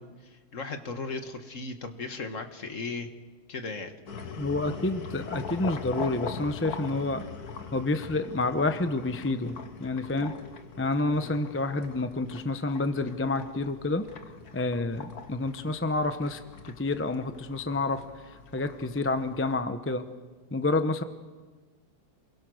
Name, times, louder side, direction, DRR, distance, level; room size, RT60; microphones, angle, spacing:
voice 1, 0.0-3.1 3.5-4.0 11.2-11.4, left 3 dB, 50° left, 7 dB, 1.8 m, -37 dB
sound 1, 4.1-19.6, left 5 dB, 65° left, 1.8 m, -42 dB
voice 2, 4.4-7.2 7.7-10.3 10.8-14.1 14.5-16.4 16.8-20.0 20.5-21.0, left 2 dB, 10° left, 9 dB, 0.6 m, -29 dB
28.0 x 22.0 x 6.4 m, 1.4 s
omnidirectional pair, 1.8 m